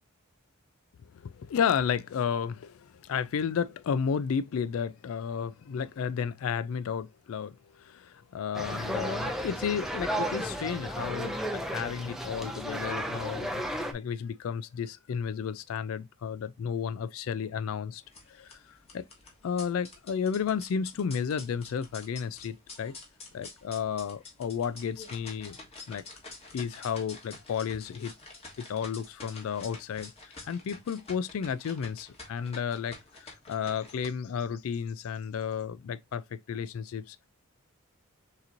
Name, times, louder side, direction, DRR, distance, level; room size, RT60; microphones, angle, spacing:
voice 1, 1.1-13.6 13.9-18.0 18.3-18.6 18.9-19.0 19.4-22.9 23.3-25.6 25.9-26.0 26.5-28.1 28.6-37.2, left 7 dB, 75° left, 0.3 m, -32 dB
sound 1, 8.5-13.9, equal, ahead, 0.6 m, -33 dB
sound 2, 18.0-34.1, left 3 dB, 30° left, 1.5 m, -48 dB
6.6 x 3.0 x 2.6 m
head